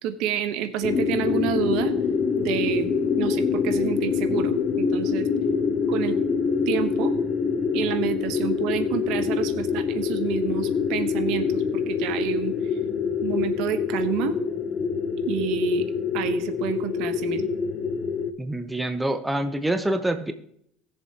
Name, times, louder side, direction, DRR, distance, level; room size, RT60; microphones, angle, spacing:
voice 1, 0.0-1.9 2.4-5.3 5.9-6.2 6.7-7.1 7.7-12.8 13.2-14.4 15.3-15.9 16.1-17.5, right 10 dB, 70° right, 10 dB, 1.1 m, -29 dB
sound 1, 0.8-18.3, left 6 dB, 35° left, 0.7 m, -25 dB
voice 2, 18.4-20.3, right 1 dB, 10° right, 8 dB, 0.8 m, -26 dB
20.0 x 7.2 x 2.9 m, 0.70 s
cardioid pair, 125°, 0 cm